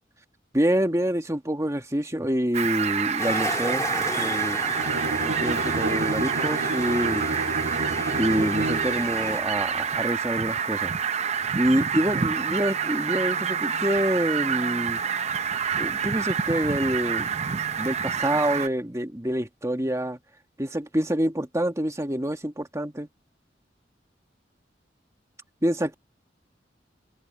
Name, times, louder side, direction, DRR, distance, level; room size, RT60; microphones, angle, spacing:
voice 1, 0.5-4.6 5.2-7.2 8.2-10.9 11.5-15.0 15.8-17.3 17.8-20.2 20.6-23.1 25.6-25.9, equal, 15° right, 1.8 m, -26 dB
Fowl, 2.5-18.7, right 7 dB, 40° right, 0.6 m, -28 dB
sound 1, 3.2-9.4, left 2 dB, 20° left, 2.3 m, -34 dB
Bowed string instrument, 4.7-9.1, right 2 dB, 85° right, 2.0 m, -30 dB
open air
head